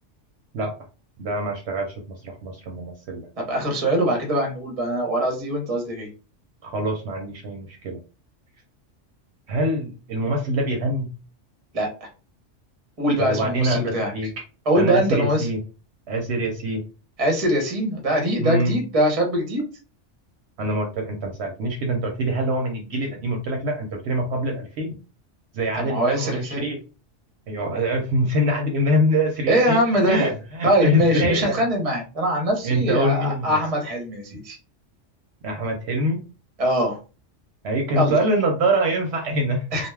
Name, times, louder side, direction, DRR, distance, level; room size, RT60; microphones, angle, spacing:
voice 1, 1.2-1.9 2.2-3.3 6.6-8.0 9.5-11.1 13.2-14.3 14.8-15.6 16.1-16.8 18.4-18.7 20.6-25.0 25.5-26.8 27.5-29.8 30.1-31.6 32.6-33.6 35.4-36.2 37.6-39.6, right 1 dB, 65° right, 2 dB, 0.8 m, -24 dB
voice 2, 3.4-6.1 11.7-12.1 13.0-14.1 14.7-15.5 17.2-19.6 25.8-26.7 29.5-30.3 30.6-34.6 36.6-37.0 38.0-38.1 39.7-39.9, right 1 dB, 35° right, 2 dB, 0.8 m, -22 dB
2.2 x 2.2 x 3.2 m, 0.33 s
omnidirectional pair, 1.3 m